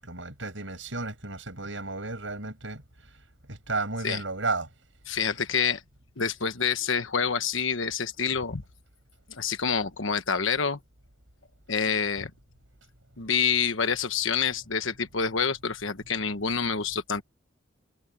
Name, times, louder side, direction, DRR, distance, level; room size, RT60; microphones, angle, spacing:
voice 1, 0.0-3.2 3.5-4.7, right 3 dB, 70° right, 7.1 m, -33 dB
voice 2, 5.1-5.8 6.2-8.6 9.3-10.8 11.7-12.3 13.2-17.2, left 6 dB, 75° left, 1.3 m, -27 dB
head